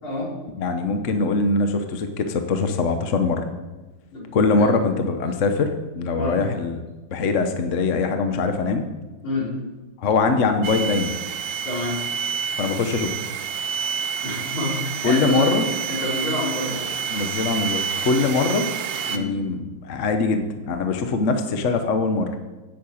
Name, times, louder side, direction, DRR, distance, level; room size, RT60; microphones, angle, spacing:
voice 1, 0.6-3.4 4.3-6.8 7.1-8.8 10.0-11.1 12.6-13.1 15.0-15.6 17.1-18.7 19.1-20.4 20.7-22.3, left 4 dB, 50° left, 6 dB, 1.0 m, -22 dB
voice 2, 4.1-4.7 6.1-6.4 9.2-9.5 11.6-12.0 14.2-15.5 15.9-16.9 19.1-19.3, left 1 dB, 70° left, -6 dB, 5.0 m, -27 dB
sound 1, 10.6-19.2, right 7 dB, 70° right, 1.3 m, -28 dB
8.8 x 7.7 x 8.5 m, 1.2 s
omnidirectional pair, 2.3 m